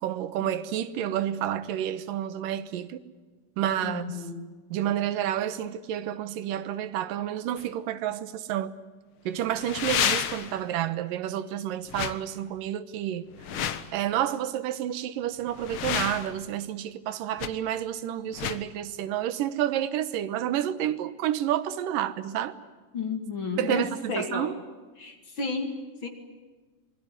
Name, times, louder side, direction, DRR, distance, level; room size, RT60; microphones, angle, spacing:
voice 1, 0.0-3.0 3.6-4.2 4.7-8.7 9.3-13.3 13.9-22.5 23.6-24.5, right 11 dB, 85° right, 2.7 m, -30 dB
voice 2, 3.8-4.4 22.9-24.5 25.0-26.1, left 4 dB, 40° left, 2.9 m, -32 dB
sound 1, 7.6-7.7 9.5-10.6 11.9-12.2 13.3-13.9 15.5-16.4 17.4-17.5 18.3-18.6, left 9 dB, 65° left, 1.3 m, -30 dB
26.5 x 21.0 x 9.7 m
omnidirectional pair, 3.9 m